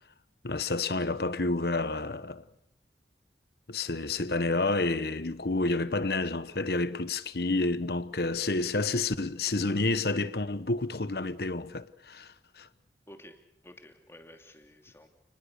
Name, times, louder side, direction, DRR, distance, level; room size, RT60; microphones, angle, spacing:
voice 1, 0.4-2.4 3.7-12.7, left 2 dB, 60° left, 1.1 m, -29 dB
voice 2, 13.1-13.4 13.6-15.1, left 1 dB, 15° left, 2.9 m, -51 dB
29.0 x 20.5 x 6.7 m
head